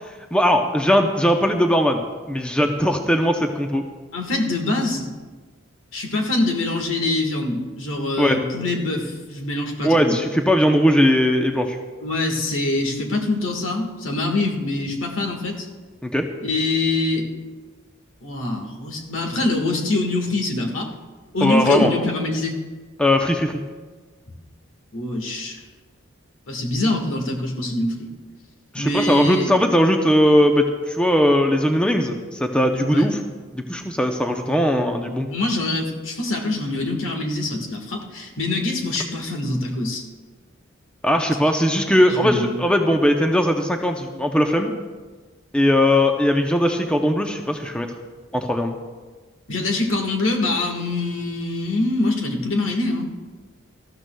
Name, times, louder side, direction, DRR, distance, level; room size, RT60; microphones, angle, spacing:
voice 1, 0.3-3.8 8.2-8.4 9.8-11.8 16.0-16.3 21.4-21.9 23.0-23.6 28.7-33.2 33.5-35.3 41.0-44.7 45.5-47.9 48.3-48.7, equal, 5° left, 4 dB, 0.6 m, -19 dB
voice 2, 4.1-5.1 5.9-10.2 12.0-15.7 16.4-17.3 18.2-20.9 21.3-22.5 24.9-25.6 26.5-28.1 28.8-29.5 32.9-33.0 35.3-40.0 42.1-42.6 49.5-53.1, left 2 dB, 75° left, 2 dB, 1.6 m, -24 dB
19.0 x 13.5 x 2.3 m, 1.4 s
head